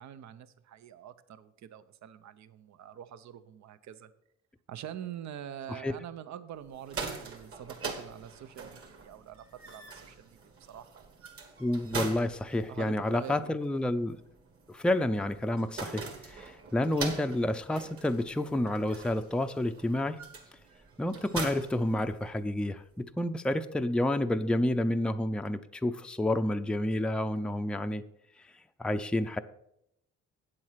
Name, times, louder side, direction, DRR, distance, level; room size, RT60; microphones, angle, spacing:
voice 1, 0.0-4.1 4.7-11.1 12.7-13.6, right 10 dB, 65° right, 14 dB, 0.7 m, -45 dB
sound 1, 6.7-22.6, right 4 dB, 50° right, 2.1 m, -43 dB
voice 2, 11.6-14.2 14.7-20.2 21.0-28.0 28.8-29.4, left 1 dB, 5° left, 8 dB, 0.5 m, -29 dB
8.6 x 7.8 x 5.7 m, 0.77 s
cardioid pair, 90°, 30 cm